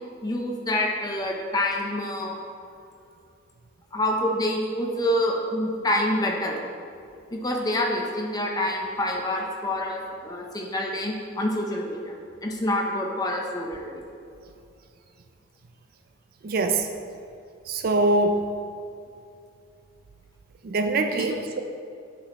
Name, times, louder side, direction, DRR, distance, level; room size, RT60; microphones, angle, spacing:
voice 1, 0.2-2.4 3.9-6.6 7.3-14.0 21.2-21.3, left 1 dB, 20° left, 0 dB, 0.7 m, -27 dB
voice 2, 16.4-16.9 17.7-18.4 20.6-21.6, right 2 dB, 45° right, 6 dB, 0.4 m, -23 dB
8.4 x 6.0 x 3.0 m, 2.5 s
head